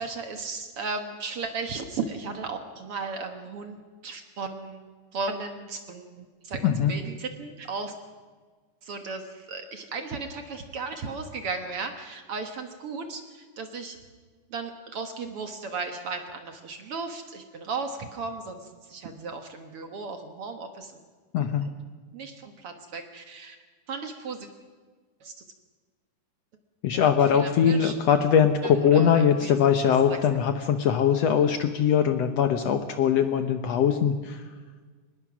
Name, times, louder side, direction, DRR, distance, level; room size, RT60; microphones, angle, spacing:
voice 1, 0.0-4.9 5.1-7.9 8.8-14.0 14.5-20.9 21.4-21.7 22.1-23.6 23.9-24.5 25.2-25.3 26.9-28.0 28.6-29.5 30.0-30.2, right 4 dB, 55° right, 6 dB, 1.9 m, -35 dB
voice 2, 21.3-21.6 26.8-34.4, left 8 dB, 70° left, 8 dB, 1.7 m, -22 dB
24.0 x 20.5 x 6.1 m, 1.5 s
omnidirectional pair, 3.7 m